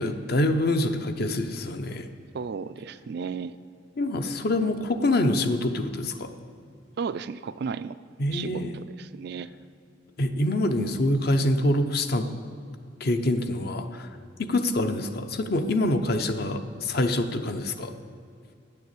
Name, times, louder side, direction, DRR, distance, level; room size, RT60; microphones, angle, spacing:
voice 1, 0.0-2.1 4.0-6.3 8.2-8.8 10.2-12.3 13.0-14.1 14.4-17.9, left 1 dB, 50° left, 8 dB, 0.7 m, -25 dB
voice 2, 2.3-3.6 7.0-8.0 8.3-9.5, right 6 dB, 55° right, 13 dB, 0.3 m, -34 dB
9.6 x 6.8 x 8.3 m, 2.4 s
head